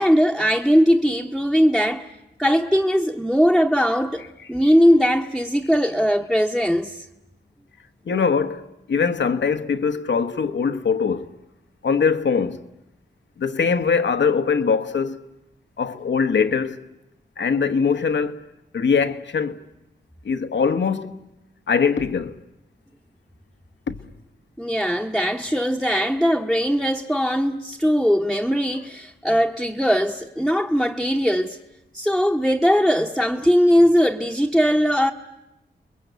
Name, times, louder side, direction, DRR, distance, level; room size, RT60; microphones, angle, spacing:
voice 1, 0.0-2.1 2.4-7.1 24.6-31.6 31.9-35.1, equal, ahead, 0.9 m, -20 dB
voice 2, 8.1-11.3 11.8-12.6 13.4-15.2 15.8-16.8 17.4-18.4 18.7-19.6 20.2-21.2 21.7-22.3 23.9-24.0, left 5 dB, 85° left, 1.1 m, -22 dB
30.0 x 21.5 x 8.1 m
wide cardioid pair, 75°, 18 cm